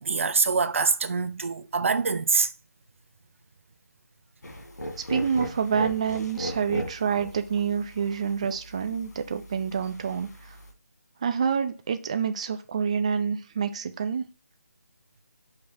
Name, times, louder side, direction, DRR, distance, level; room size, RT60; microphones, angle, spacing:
voice 1, 0.0-2.5, right 4 dB, 50° right, 0.6 m, -24 dB
sound 1, 4.4-10.7, equal, 80° left, 1.9 m, -38 dB
voice 2, 5.1-10.3 11.2-14.2, right 6 dB, 25° right, 0.3 m, -27 dB
5.3 x 3.4 x 5.4 m
figure-of-eight pair, 165°, 9 cm